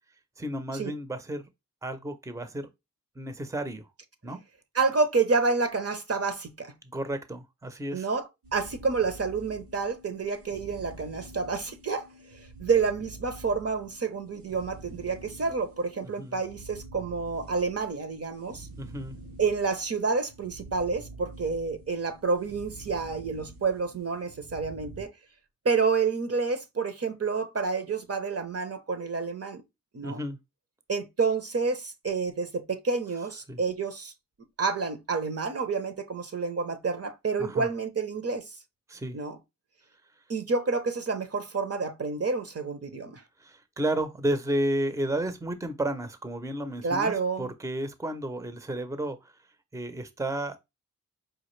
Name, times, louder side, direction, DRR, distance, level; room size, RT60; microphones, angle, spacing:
voice 1, 0.4-1.5 1.8-2.7 3.2-3.9 4.2-4.4 6.8-8.1 16.2-16.4 18.8-19.2 30.0-30.4 33.5-33.6 37.4-37.7 38.9-39.2 43.4-49.3 49.7-50.6, right 1 dB, 10° right, 0.6 m, -32 dB
voice 2, 4.7-6.7 7.9-12.1 12.3-18.7 19.4-25.1 25.6-29.6 29.9-30.2 30.9-34.1 34.6-38.5 39.1-39.4 40.3-43.2 46.8-47.5, right 4 dB, 45° right, 0.7 m, -29 dB
sound 1, 8.4-25.1, right 2 dB, 80° right, 0.9 m, -47 dB
4.9 x 2.4 x 3.1 m
cardioid pair, 50°, 34 cm